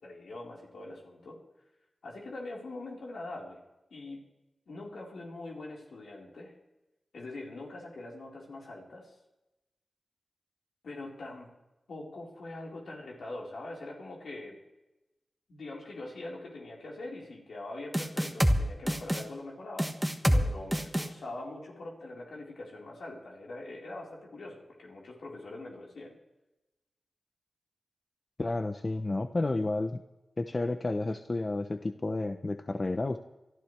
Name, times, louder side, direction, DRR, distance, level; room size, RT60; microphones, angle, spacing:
voice 1, 0.0-1.4 2.0-3.6 3.9-4.2 4.7-6.5 7.1-9.2 10.8-11.5 11.9-14.6 15.5-19.9 20.2-26.2, left 2 dB, 80° left, -3 dB, 4.4 m, -43 dB
sound 1, 17.9-18.6 18.9-19.2 19.8-20.4 20.7-21.1, equal, 5° right, 1.5 m, -25 dB
voice 2, 28.4-30.0 30.4-33.2, left 2 dB, 35° left, 8 dB, 0.7 m, -31 dB
25.0 x 12.5 x 3.4 m, 0.99 s
wide cardioid pair, 70°, 0 cm